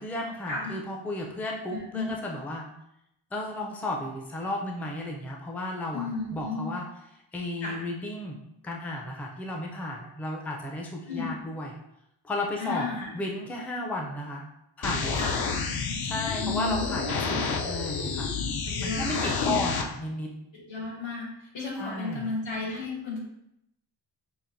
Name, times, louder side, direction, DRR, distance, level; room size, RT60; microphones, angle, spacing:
voice 1, 0.0-2.7 3.3-6.9 7.3-8.4 8.6-11.8 12.2-12.9 13.1-14.4 14.8-15.3 16.0-18.3 18.8-20.3 21.8-22.3, left 1 dB, 5° left, 0 dB, 0.4 m, -33 dB
voice 2, 1.7-2.1 5.9-6.7 7.6-7.8 11.1-11.4 12.6-13.1 15.1-15.5 16.4-17.4 18.7-19.7 20.5-23.2, left 3 dB, 90° left, -4 dB, 1.4 m, -33 dB
sound 1, 14.8-19.8, left 5 dB, 60° left, 0.5 m, -30 dB
5.7 x 2.5 x 2.6 m, 0.81 s
wide cardioid pair, 150°, 44 cm